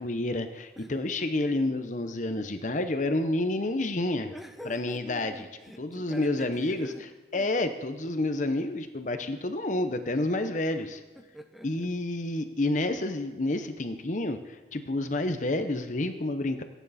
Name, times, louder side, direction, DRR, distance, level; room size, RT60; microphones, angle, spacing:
voice 1, 0.0-4.3 4.7-5.5 5.8-6.9 7.3-11.0 11.6-16.6, left 2 dB, 45° left, 8 dB, 0.9 m, -29 dB
voice 2, 4.3-7.0 7.3-7.7 11.2-11.7, equal, ahead, 5 dB, 1.0 m, -45 dB
25.5 x 9.2 x 4.3 m, 1.2 s
head